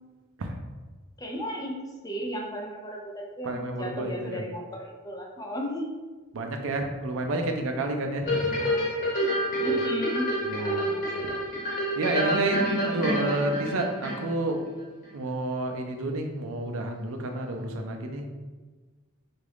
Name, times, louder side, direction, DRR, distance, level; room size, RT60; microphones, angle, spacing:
voice 1, 1.2-1.8 2.0-5.9 8.3-8.9 9.6-11.5, equal, 15° left, 0 dB, 0.4 m, -35 dB
voice 2, 3.4-4.4 6.3-8.6 9.6-9.7 10.4-10.9 12.0-14.6 15.1-18.3, right 2 dB, 70° right, 4 dB, 0.5 m, -30 dB
sound 1, 8.3-14.5 15.0-15.1, equal, 40° left, 1.0 m, -28 dB
3.6 x 2.4 x 3.4 m, 1.3 s
head